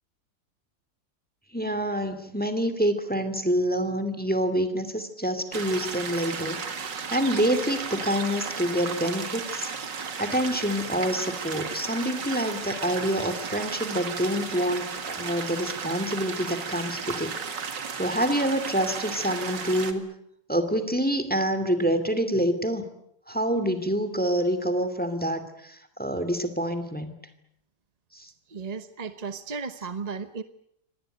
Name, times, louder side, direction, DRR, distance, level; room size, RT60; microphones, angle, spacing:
voice 1, 1.5-6.6 6.8-9.7 10.2-17.4 17.9-20.0 20.5-22.8 23.3-27.2 28.1-28.3, equal, 5° left, 10 dB, 2.3 m, -27 dB
sound 1, 5.5-19.9, right 5 dB, 75° right, 2.7 m, -34 dB
voice 2, 28.5-30.4, right 5 dB, 30° right, 11 dB, 0.8 m, -35 dB
25.5 x 18.5 x 9.0 m, 0.73 s
omnidirectional pair, 1.9 m